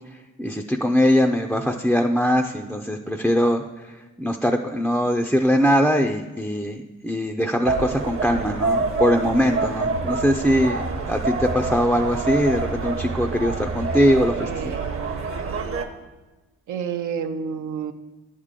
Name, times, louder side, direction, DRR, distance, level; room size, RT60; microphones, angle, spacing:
voice 1, 0.4-14.5, equal, 5° left, 3 dB, 0.4 m, -21 dB
sound 1, 7.6-15.8, right 3 dB, 45° right, 0.9 m, -27 dB
voice 2, 14.3-15.3 16.7-17.9, right 7 dB, 75° right, 6 dB, 0.6 m, -30 dB
10.5 x 3.7 x 6.6 m, 1.2 s
cardioid pair, 80°, 30 cm